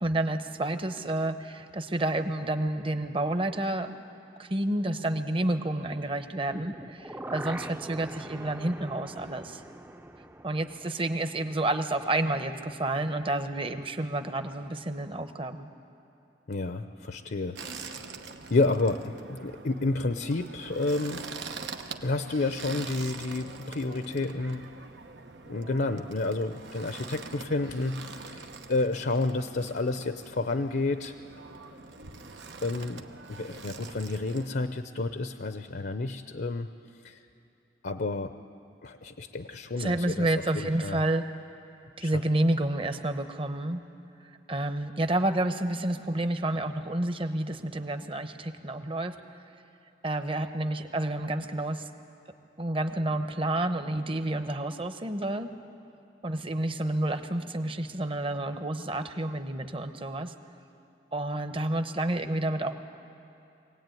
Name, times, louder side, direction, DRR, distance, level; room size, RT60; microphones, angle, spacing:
voice 1, 0.0-4.0 4.4-9.6 10.4-15.7 39.8-41.2 42.0-43.8 44.5-49.2 50.0-51.9 52.6-55.5 56.2-60.3 61.1-62.7, right 1 dB, 30° right, 9 dB, 0.9 m, -29 dB
sound 1, 6.5-12.5 12.8-12.9, right 1 dB, 10° right, 0.5 m, -43 dB
voice 2, 16.5-18.0 18.5-21.3 22.0-24.8 25.5-31.2 32.6-36.7 37.0-37.2 37.8-38.4 38.8-41.0 42.0-42.1, left 2 dB, 65° left, 9 dB, 0.7 m, -30 dB
sound 2, 17.6-34.5, right 4 dB, 90° right, 1.0 m, -44 dB
23.0 x 18.0 x 9.2 m, 2.8 s
head